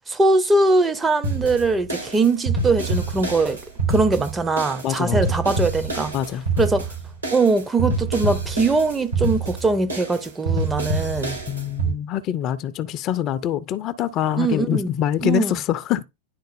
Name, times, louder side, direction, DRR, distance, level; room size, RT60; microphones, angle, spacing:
voice 1, 0.1-3.6 3.9-6.1 6.6-6.9 7.3-11.4 14.4-14.9 15.2-15.6, right 3 dB, 15° right, 0.6 m, -21 dB
sound 1, 1.2-11.9, right 3 dB, 85° right, 3.8 m, -26 dB
voice 2, 4.8-5.2 6.1-6.4 11.5-16.0, left 11 dB, 35° left, 0.5 m, -24 dB
10.5 x 3.9 x 2.6 m
figure-of-eight pair, 90°, 0 cm